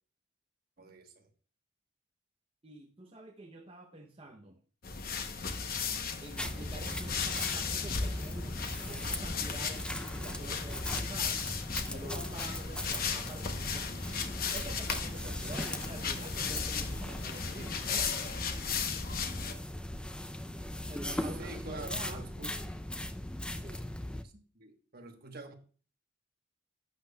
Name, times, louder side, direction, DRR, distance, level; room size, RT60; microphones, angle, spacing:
voice 1, 0.8-1.3 21.4-22.5 24.2-25.5, right 2 dB, 50° right, 4 dB, 1.2 m, -47 dB
voice 2, 2.6-4.6 6.2-8.6 8.9-14.2 14.5-18.1 20.9-22.2 23.5-24.0, right 2 dB, 30° right, 1 dB, 0.7 m, -48 dB
sound 1, 4.8-19.5, left 5 dB, 45° left, 0.8 m, -36 dB
sound 2, 6.4-24.2, left 1 dB, 5° left, 0.4 m, -39 dB
11.5 x 8.2 x 2.3 m, 0.40 s
head